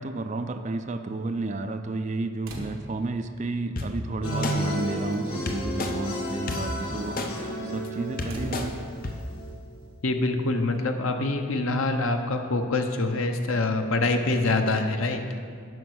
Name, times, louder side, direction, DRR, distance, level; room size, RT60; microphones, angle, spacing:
voice 1, 0.0-7.3 7.6-8.7, right 2 dB, 35° right, 8 dB, 0.4 m, -31 dB
sound 1, 2.4-3.2 4.2-4.3 4.7-5.0 5.3-5.6 8.3-9.2 10.7-10.8, right 1 dB, 65° right, 1.3 m, -39 dB
sound 2, 3.8-3.9 4.4-4.6 5.5-5.9 6.5-6.6 7.2-7.3 7.8-7.9 8.2-8.6 9.0-9.1, left 3 dB, 40° left, 0.7 m, -29 dB
sound 3, 4.2-9.5, equal, 90° left, 1.7 m, -33 dB
voice 2, 10.0-15.2, left 2 dB, 70° left, 5 dB, 0.8 m, -25 dB
9.3 x 5.9 x 6.3 m, 2.1 s
head